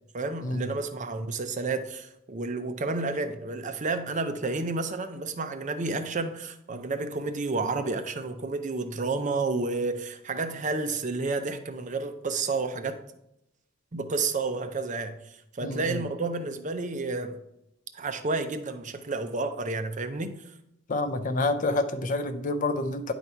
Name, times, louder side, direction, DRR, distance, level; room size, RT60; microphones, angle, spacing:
voice 1, 0.1-13.0 13.9-17.4 17.9-20.5, right 3 dB, 35° right, 0.6 m, -31 dB
voice 2, 15.6-16.0 20.9-23.1, left 2 dB, 40° left, 0.5 m, -28 dB
9.7 x 4.1 x 4.5 m
head